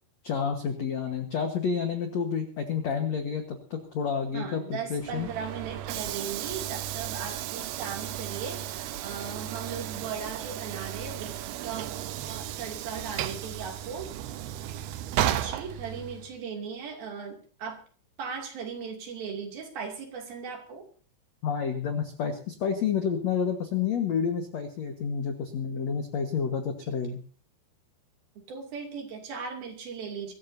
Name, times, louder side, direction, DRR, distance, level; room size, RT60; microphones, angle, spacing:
voice 1, 0.2-5.3 21.4-27.2, left 6 dB, 70° left, 5 dB, 1.6 m, -29 dB
voice 2, 4.3-11.3 11.6-11.9 12.2-14.1 15.1-17.8 18.2-20.8 26.9-27.0 28.5-30.3, right 6 dB, 55° right, 2 dB, 4.2 m, -38 dB
Train / Sliding door, 4.9-16.4, right 12 dB, 80° right, 2.3 m, -34 dB
23.5 x 14.0 x 2.7 m, 0.41 s
omnidirectional pair, 5.3 m